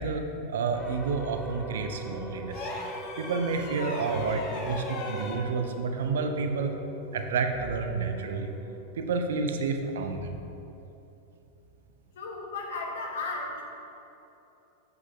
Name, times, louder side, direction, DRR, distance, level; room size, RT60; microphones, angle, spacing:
voice 1, 0.0-2.7 3.2-6.7 7.1-8.5 9.0-10.4, right 4 dB, 60° right, 6 dB, 0.6 m, -30 dB
sound 1, 0.7-10.0, right 1 dB, ahead, 0.6 m, -43 dB
sound 2, 2.5-5.5 7.1-7.3, left 2 dB, 35° left, 1.0 m, -37 dB
voice 2, 12.1-13.6, left 3 dB, 60° left, 0 dB, 1.2 m, -34 dB
7.6 x 5.7 x 3.7 m, 2.9 s
figure-of-eight pair, 90°, 0 cm